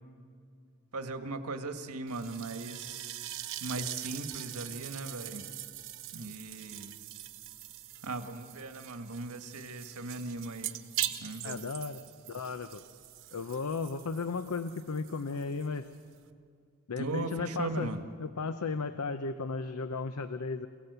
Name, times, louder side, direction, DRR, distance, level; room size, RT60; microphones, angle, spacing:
voice 1, 0.9-3.2 3.6-5.5 6.1-6.9 8.0-10.8 11.2-11.6 17.0-18.0, right 3 dB, 90° right, 7 dB, 1.6 m, -38 dB
sound 1, 2.1-16.3, right 12 dB, 65° right, 1.1 m, -42 dB
voice 2, 11.4-12.0 12.3-12.8 13.3-15.9 16.9-17.9 18.2-20.7, left 4 dB, 85° left, 11 dB, 0.7 m, -35 dB
28.0 x 17.5 x 8.1 m, 2.3 s
head